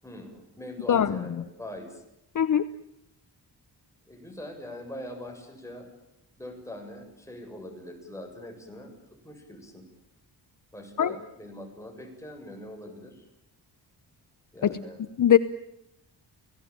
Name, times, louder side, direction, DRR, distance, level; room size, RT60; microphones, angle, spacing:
voice 1, 0.0-2.0 4.1-5.9 6.4-9.8 10.7-13.2 14.5-15.0, left 1 dB, 5° left, 2 dB, 7.6 m, -42 dB
voice 2, 0.9-1.2 2.3-2.7 11.0-11.1 14.6-14.8 15.2-15.4, left 9 dB, 50° left, 13 dB, 0.9 m, -20 dB
29.0 x 17.5 x 8.9 m, 0.85 s
wide cardioid pair, 110°, 41 cm